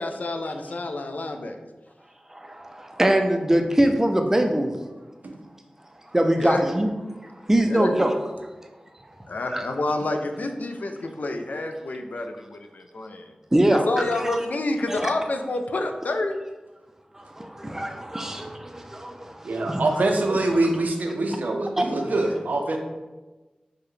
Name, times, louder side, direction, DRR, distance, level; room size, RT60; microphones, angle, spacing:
voice 1, 0.0-1.6 6.4-6.6 7.6-7.9 9.3-13.2 13.7-16.4, left 2 dB, 75° left, 5 dB, 0.3 m, -28 dB
voice 2, 2.4-4.7 6.1-6.9 7.5-8.1 9.5-9.6 13.5-13.8 14.9-15.1 17.4-19.3 19.7-19.8 21.8-21.9, right 1 dB, 15° right, 5 dB, 0.4 m, -22 dB
voice 3, 19.4-22.8, right 2 dB, 80° right, 3 dB, 0.5 m, -24 dB
4.6 x 2.1 x 3.1 m, 1.2 s
wide cardioid pair, 60°, 3 cm